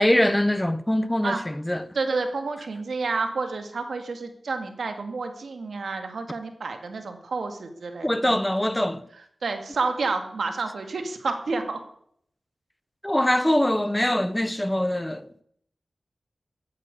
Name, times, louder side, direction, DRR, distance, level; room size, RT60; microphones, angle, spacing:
voice 1, 0.0-1.9 8.0-9.0 13.0-15.4, left 1 dB, 10° left, 0.8 m, -23 dB
voice 2, 1.9-8.4 9.4-11.8, right 4 dB, 90° right, 2.3 m, -30 dB
15.0 x 9.6 x 8.5 m
wide cardioid pair, 105°, 0 cm